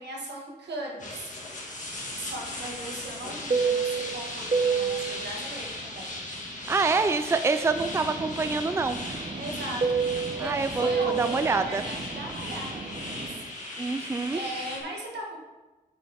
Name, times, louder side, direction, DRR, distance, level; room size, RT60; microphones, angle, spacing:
voice 1, 0.0-1.4 1.9-6.1 9.3-13.4 13.7-14.0 14.3-15.4, right 1 dB, 85° right, -1 dB, 1.6 m, -39 dB
sound 1, 1.0-14.8, left 2 dB, 45° left, 1.7 m, -37 dB
Fixed-wing aircraft airplane, 1.9-7.3 7.6-13.4, right 5 dB, 40° right, 0.8 m, -31 dB
voice 2, 6.7-9.0 10.4-10.9 11.1-11.8 13.8-14.4, right 4 dB, 15° right, 10 dB, 0.4 m, -26 dB
8.5 x 5.4 x 3.5 m, 1.2 s
cardioid pair, 80°, 17 cm